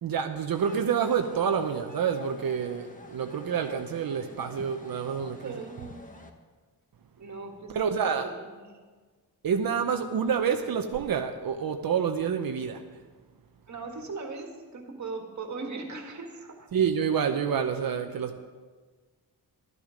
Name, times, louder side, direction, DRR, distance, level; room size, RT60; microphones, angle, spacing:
voice 1, 0.0-5.6 7.7-8.3 9.4-12.8 16.7-18.4, right 7 dB, 65° right, 6 dB, 0.8 m, -28 dB
sound 1, 0.5-6.3, left 2 dB, 20° left, 1.1 m, -49 dB
voice 2, 5.4-6.1 7.2-8.8 13.7-16.7 17.7-17.9 18.1-18.4, right 3 dB, 45° right, 3 dB, 1.9 m, -40 dB
12.5 x 12.0 x 5.1 m, 1.4 s
wide cardioid pair, 135°, 38 cm